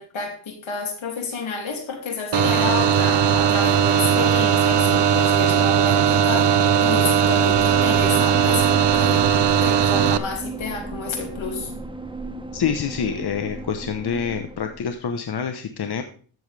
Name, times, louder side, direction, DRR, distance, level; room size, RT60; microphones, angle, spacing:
voice 1, 0.0-9.3 9.6-11.7, left 5 dB, 80° left, 3 dB, 2.8 m, -30 dB
sound 1, 2.3-10.2, right 8 dB, 65° right, 0.8 m, -18 dB
sound 2, 7.2-15.0, right 3 dB, 10° right, 1.0 m, -35 dB
voice 2, 12.5-16.0, left 7 dB, 55° left, 7 dB, 1.0 m, -26 dB
14.0 x 7.2 x 3.4 m, 0.43 s
cardioid pair, 90°, 46 cm